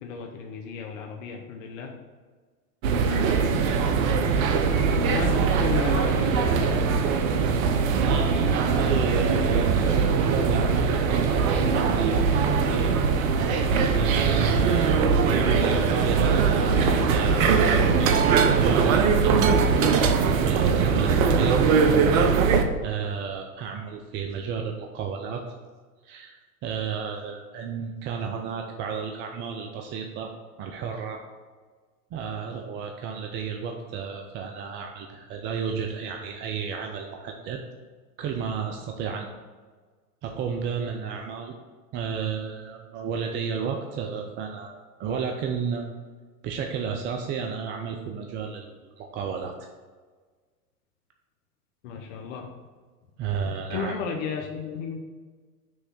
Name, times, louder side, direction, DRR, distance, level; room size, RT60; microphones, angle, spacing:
voice 1, 0.0-1.9 3.1-3.8 5.1-6.8 16.8-17.0 51.8-52.5 53.7-55.0, left 6 dB, 55° left, 2 dB, 1.0 m, -34 dB
sound 1, 2.8-22.6, right 5 dB, 60° right, 0.8 m, -21 dB
voice 2, 7.9-12.9 13.9-19.4 20.0-21.6 22.8-25.4 26.0-30.3 30.6-31.2 32.1-37.6 38.2-39.3 40.2-41.5 41.9-44.7 45.0-45.9 46.4-48.7 49.0-49.5 53.2-54.0, right 6 dB, 25° right, 3 dB, 0.4 m, -32 dB
6.3 x 3.2 x 5.9 m, 1.4 s
hypercardioid pair, 105°, 46 cm